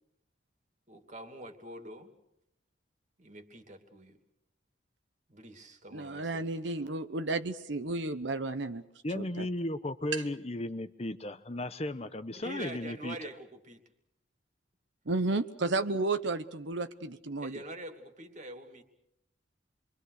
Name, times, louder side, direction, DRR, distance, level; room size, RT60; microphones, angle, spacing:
voice 1, 0.9-2.1 3.2-4.2 5.3-6.5 12.4-13.8 17.4-18.8, right 1 dB, 40° right, 2.6 m, -45 dB
voice 2, 5.9-8.8 9.1-9.5 15.1-17.6, right 2 dB, 70° right, 1.0 m, -32 dB
voice 3, 9.0-13.2, left 1 dB, 30° left, 1.0 m, -35 dB
28.0 x 23.5 x 6.6 m
head